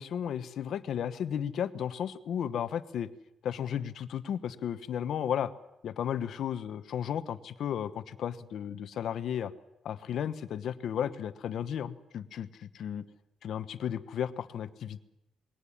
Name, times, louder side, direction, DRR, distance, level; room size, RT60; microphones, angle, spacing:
voice 1, 0.0-3.1 3.4-5.5 5.8-9.5 9.8-13.1 13.4-15.0, left 9 dB, 60° left, 12 dB, 1.1 m, -34 dB
21.0 x 17.5 x 9.9 m, 0.91 s
cardioid pair, 150°, 0 cm